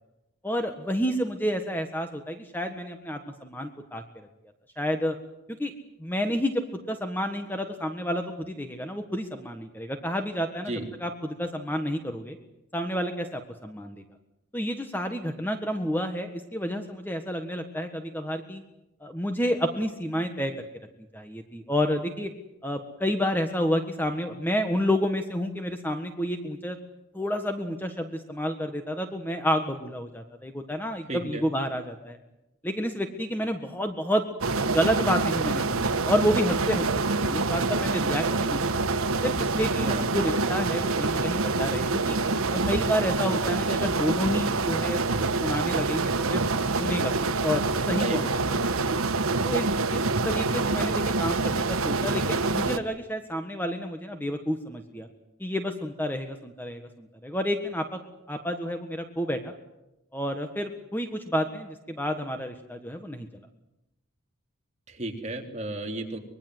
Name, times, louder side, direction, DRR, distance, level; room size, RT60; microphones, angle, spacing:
voice 1, 0.4-4.3 4.8-5.2 5.5-5.7 6.0-6.6 6.9-10.7 11.0-12.4 12.7-14.0 14.5-18.6 19.0-20.5 21.1-22.3 22.6-26.8 27.1-32.2 32.6-34.2 34.7-36.9 37.1-38.8 39.2-42.2 42.5-46.4 46.8-48.3 49.4-55.1 55.4-58.0 58.3-59.5 60.1-63.3, equal, 10° left, 6 dB, 1.5 m, -30 dB
voice 2, 31.1-31.5 39.8-40.1 48.0-48.3 64.9-66.2, right 2 dB, 30° right, 3 dB, 3.5 m, -33 dB
sound 1, 34.4-52.8, right 3 dB, 85° right, 1.4 m, -26 dB
25.0 x 22.0 x 8.0 m, 0.91 s
head